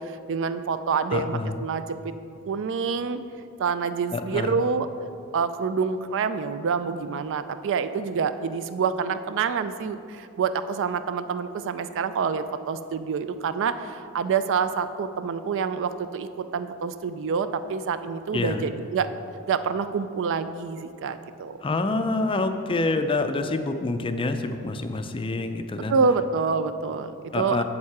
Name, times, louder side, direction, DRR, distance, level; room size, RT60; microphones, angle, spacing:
voice 1, 0.0-2.1 2.5-3.2 3.6-4.9 5.3-19.1 19.5-21.6 25.9-27.6, right 5 dB, 60° right, 11 dB, 0.4 m, -27 dB
voice 2, 1.1-1.6 4.1-4.5 18.3-18.7 21.6-26.0 27.3-27.6, left 2 dB, 25° left, 7 dB, 0.4 m, -27 dB
7.4 x 7.3 x 4.7 m, 2.5 s
head